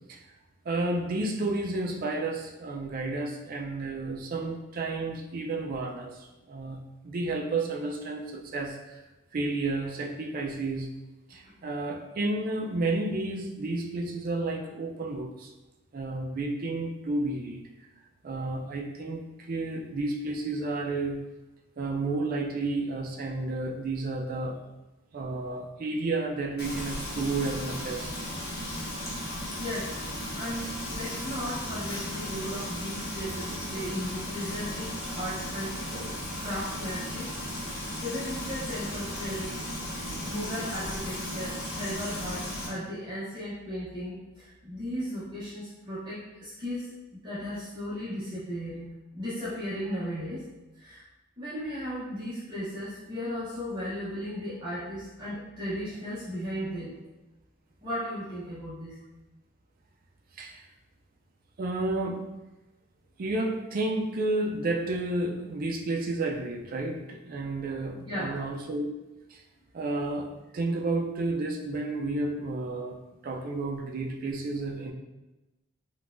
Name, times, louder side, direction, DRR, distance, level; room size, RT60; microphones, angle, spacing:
voice 1, 0.7-6.8 7.0-9.0 9.3-10.9 11.3-15.5 15.9-17.6 18.2-21.2 21.8-24.6 25.1-28.1 60.3-60.6 61.6-62.3 63.2-68.9 69.3-69.4 69.7-70.3 70.5-73.0 73.2-74.9, right 2 dB, 40° right, 1 dB, 0.3 m, -31 dB
Frying (food), 26.6-42.7, left 1 dB, 45° left, 0.8 m, -35 dB
voice 2, 29.5-35.8 36.4-37.3 37.6-39.6 40.3-50.4 50.8-51.0 51.4-57.0 57.8-59.0 68.0-68.4, equal, 20° right, -11 dB, 0.7 m, -36 dB
3.9 x 2.2 x 2.4 m, 1.0 s
head